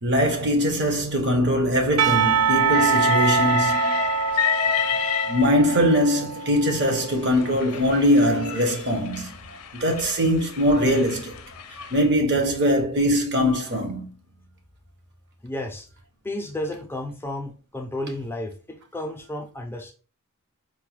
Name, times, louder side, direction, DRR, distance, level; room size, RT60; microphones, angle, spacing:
voice 1, 0.0-4.0 5.3-9.4 9.7-11.4 11.9-14.1, equal, 50° right, 0.9 m, -21 dB
Percussion / Church bell, 2.0-7.0, right 6 dB, 70° right, 0.3 m, -24 dB
Train, 2.5-5.9 6.8-12.0, left 7 dB, 70° left, 0.5 m, -29 dB
voice 2, 15.4-15.9 16.2-19.9, left 1 dB, 10° left, 0.5 m, -32 dB
4.5 x 2.2 x 3.0 m
head